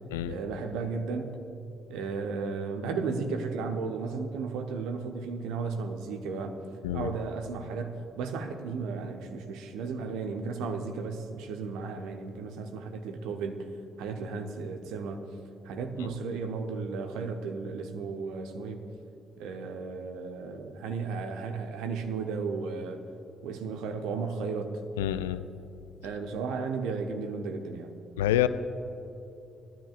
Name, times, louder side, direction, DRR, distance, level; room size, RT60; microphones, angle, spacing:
voice 1, 0.3-1.4 1.9-6.6 6.9-13.7 14.0-15.3 15.6-18.8 19.4-23.0 23.4-24.7 26.0-27.9, right 4 dB, 65° right, 5 dB, 0.9 m, -34 dB
voice 2, 25.0-25.4 28.2-28.5, left 12 dB, 75° left, 13 dB, 0.3 m, -27 dB
19.0 x 12.5 x 2.5 m, 2.8 s
figure-of-eight pair, 45°, 0 cm